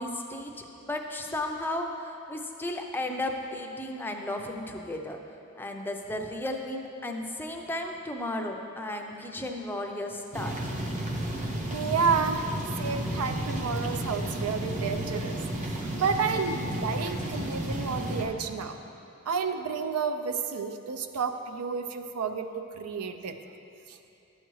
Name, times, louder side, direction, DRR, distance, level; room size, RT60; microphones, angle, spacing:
voice 1, 0.0-5.2 5.6-10.6, left 1 dB, 10° left, 2 dB, 0.5 m, -34 dB
sound 1, 10.3-18.2, right 1 dB, 35° right, 0.7 m, -32 dB
voice 2, 11.7-12.5 12.8-18.8 19.3-23.4 23.9-24.0, right 5 dB, 85° right, 8 dB, 0.5 m, -30 dB
11.5 x 7.9 x 3.1 m, 2.8 s
head